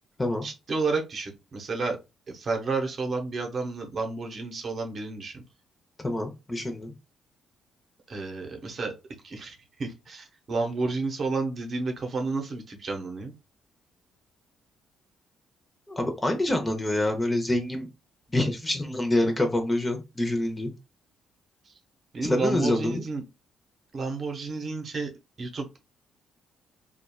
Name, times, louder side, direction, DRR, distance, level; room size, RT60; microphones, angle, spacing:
voice 1, 0.4-2.0 2.3-5.4 8.1-8.9 9.2-13.3 21.6-21.7 22.1-23.2 23.9-25.1 25.4-25.8, right 3 dB, 50° right, 3 dB, 0.7 m, -31 dB
voice 2, 6.0-6.9 15.9-17.9 18.3-20.7 22.2-23.0, left 1 dB, 20° left, 4 dB, 0.7 m, -26 dB
2.9 x 2.3 x 2.3 m, 0.26 s
cardioid pair, 90°, 0 cm